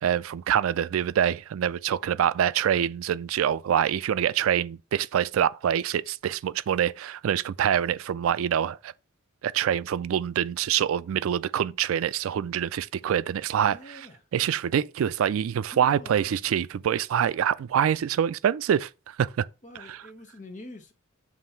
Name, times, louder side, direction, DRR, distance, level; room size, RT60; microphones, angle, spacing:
voice 1, 0.0-8.9 9.4-13.8 14.3-19.5 19.9-20.0, right 9 dB, 85° right, 0.3 m, -25 dB
voice 2, 13.7-14.3 15.7-16.3 19.6-20.9, left 1 dB, 35° left, 1.1 m, -46 dB
7.3 x 3.2 x 5.6 m
head